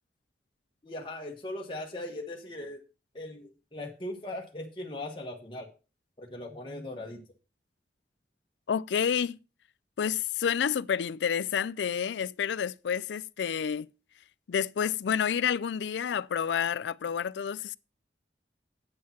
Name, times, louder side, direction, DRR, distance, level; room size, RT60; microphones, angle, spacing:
voice 1, 0.8-2.8 3.1-5.7 6.2-7.2, left 1 dB, 30° left, 1.3 m, -39 dB
voice 2, 8.7-9.4 10.0-13.9 14.5-17.8, left 8 dB, 75° left, 0.4 m, -29 dB
8.6 x 6.5 x 5.8 m
head